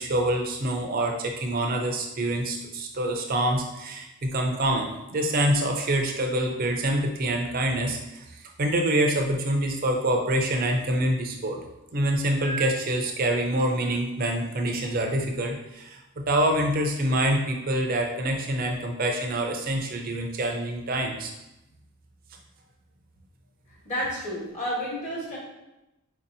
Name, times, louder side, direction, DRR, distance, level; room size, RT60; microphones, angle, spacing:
voice 1, 0.0-11.6 11.9-21.3, right 1 dB, 40° right, 2 dB, 0.4 m, -26 dB
voice 2, 23.7-25.4, equal, 30° left, -5 dB, 1.1 m, -31 dB
4.5 x 2.7 x 2.6 m, 0.93 s
head